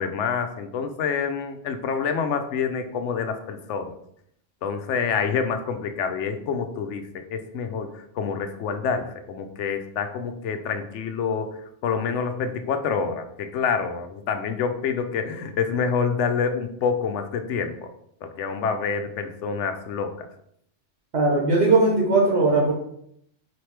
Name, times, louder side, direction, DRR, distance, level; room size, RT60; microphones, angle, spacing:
voice 1, 0.0-3.9 4.6-11.6 11.8-17.7 18.2-20.3, left 6 dB, 75° left, 7 dB, 0.9 m, -27 dB
voice 2, 21.1-22.7, right 3 dB, 65° right, -2 dB, 1.2 m, -19 dB
4.5 x 3.0 x 3.2 m, 0.70 s
omnidirectional pair, 1.3 m